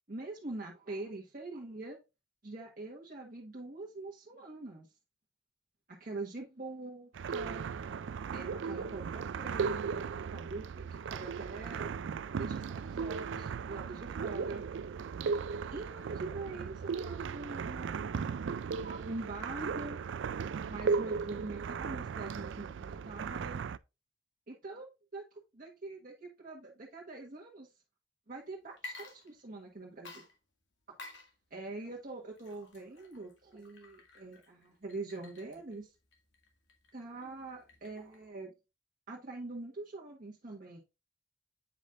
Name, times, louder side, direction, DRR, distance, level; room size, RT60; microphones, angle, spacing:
voice 1, 0.1-2.0 2.4-4.9 6.0-7.6 8.3-10.0 10.3-12.0 12.3-14.6 15.7-20.0 20.6-23.6 24.5-24.9 25.1-27.7 28.3-30.2 31.5-35.9 36.9-38.5 39.1-40.8, right 2 dB, 50° right, 1.4 m, -44 dB
sound 1, 7.1-23.8, right 5 dB, 80° right, 0.4 m, -37 dB
Water / Liquid, 28.7-29.7 30.0-38.3, left 2 dB, 85° left, 2.0 m, -52 dB
8.3 x 5.1 x 2.4 m
head